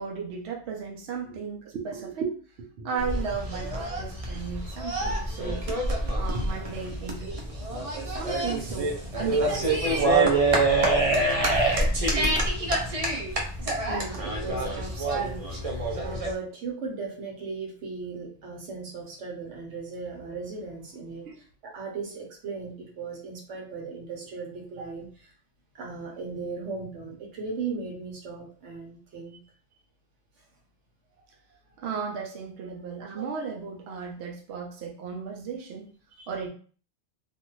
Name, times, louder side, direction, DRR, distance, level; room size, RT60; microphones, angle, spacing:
voice 1, 0.0-2.3 2.6-5.6 6.2-7.4 8.0-9.8 21.2-21.4 24.8-24.9 31.8-35.9 36.3-36.5, right 6 dB, 65° right, 0 dB, 0.8 m, -35 dB
sound 1, 3.0-16.3, right 2 dB, 40° right, 0.5 m, -26 dB
voice 2, 13.9-15.4 16.0-25.1 25.8-29.4 36.2-36.3, right 4 dB, 85° right, -1 dB, 1.2 m, -37 dB
2.6 x 2.5 x 2.9 m, 0.42 s
omnidirectional pair, 1.2 m